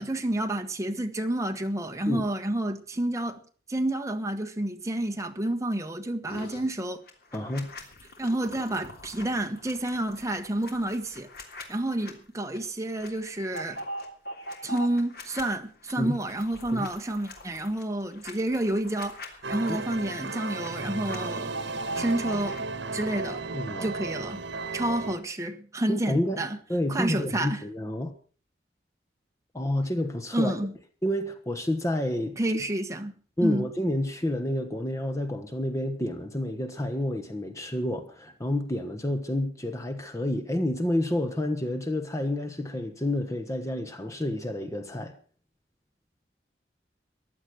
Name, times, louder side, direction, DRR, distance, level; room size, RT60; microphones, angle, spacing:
voice 1, 0.0-3.4 3.7-7.0 8.2-11.3 11.7-13.8 14.6-19.2 19.5-21.5 21.9-22.7 22.9-23.4 23.8-24.4 24.7-26.6 26.9-27.6 30.3-30.7 32.4-33.1 33.4-33.7, right 1 dB, 15° right, 1.3 m, -29 dB
sound 1, 6.3-6.7 7.1-12.1 12.5-12.6 12.9-15.4 15.8-20.7 20.9-22.6, equal, 60° left, 3.1 m, -42 dB
voice 2, 7.3-7.7 16.0-16.1 16.7-16.9 19.7-19.8 23.5-23.9 25.9-26.4 26.7-28.1 29.5-30.5 31.0-32.4 33.4-45.1, left 1 dB, 15° left, 1.2 m, -29 dB
sound 2, 19.4-25.2, right 3 dB, 75° right, 1.4 m, -34 dB
15.5 x 11.0 x 6.3 m
head